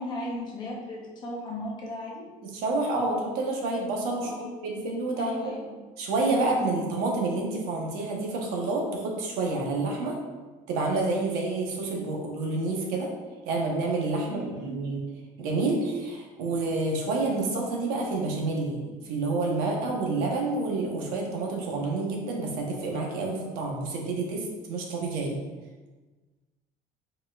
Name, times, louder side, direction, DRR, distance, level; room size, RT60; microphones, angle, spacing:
voice 1, 0.0-2.2 4.2-4.5 5.2-5.8 14.2-14.8, left 1 dB, 30° left, -2 dB, 0.8 m, -36 dB
voice 2, 2.4-5.5 6.0-10.2 10.7-13.1 13.5-15.0 15.4-25.4, right 3 dB, 80° right, 0 dB, 1.0 m, -29 dB
4.5 x 4.3 x 2.4 m, 1.3 s
cardioid pair, 175°, 15 cm